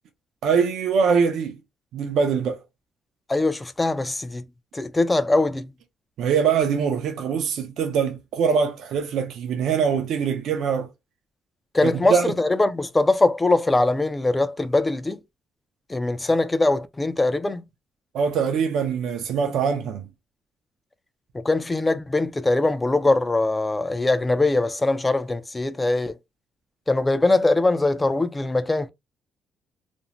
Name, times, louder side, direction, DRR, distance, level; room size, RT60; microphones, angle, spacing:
voice 1, 0.4-1.6 1.9-2.6 6.2-10.9 11.8-12.3 18.1-20.1, right 6 dB, 80° right, 0.5 m, -23 dB
voice 2, 3.3-4.4 4.7-5.7 11.7-15.2 15.9-17.6 21.3-26.1 26.9-28.9, left 2 dB, 20° left, 0.4 m, -22 dB
2.5 x 2.1 x 3.0 m
cardioid pair, 90°, 0 cm